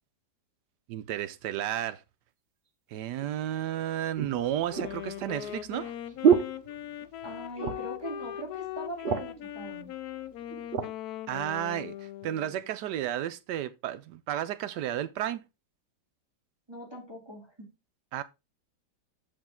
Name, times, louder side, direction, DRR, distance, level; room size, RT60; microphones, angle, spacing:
voice 1, 0.9-2.0 2.9-5.9 11.3-15.4 18.1-18.2, right 11 dB, 75° right, 1.2 m, -32 dB
sound 1, 3.2-3.3 4.2-7.3 7.6-8.0 8.4-8.5 8.8-9.5 10.2-10.9 11.6-11.7, right 7 dB, 55° right, 0.6 m, -28 dB
Wind instrument woodwind instrument, 4.7-12.7, left 12 dB, 70° left, 0.9 m, -40 dB
voice 2, 7.2-9.9 16.7-17.7, right 1 dB, 15° right, 2.5 m, -41 dB
7.0 x 5.2 x 3.6 m
omnidirectional pair, 1.9 m